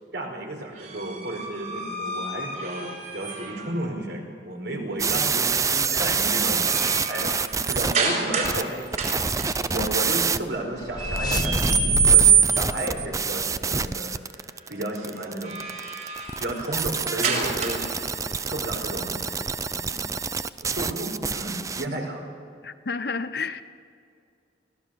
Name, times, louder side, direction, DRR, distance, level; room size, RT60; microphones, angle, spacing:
voice 1, 0.1-8.8 9.1-15.6 16.4-17.9 18.4-19.4 19.7-20.0 20.7-22.2, right 1 dB, 70° right, 4.6 m, -33 dB
sound 1, 0.8-3.7 5.5-5.8 6.2-8.6 8.9-9.5 11.0-12.9 15.2-18.0, right 6 dB, 45° right, 5.3 m, -25 dB
sound 2, 5.0-7.9 8.4-10.4 11.2-21.8, right 5 dB, 15° right, 0.4 m, -27 dB
sound 3, 10.4-14.0, left 1 dB, 20° left, 0.9 m, -30 dB
voice 2, 22.6-23.6, left 4 dB, 55° left, 0.9 m, -31 dB
24.0 x 17.0 x 6.6 m
head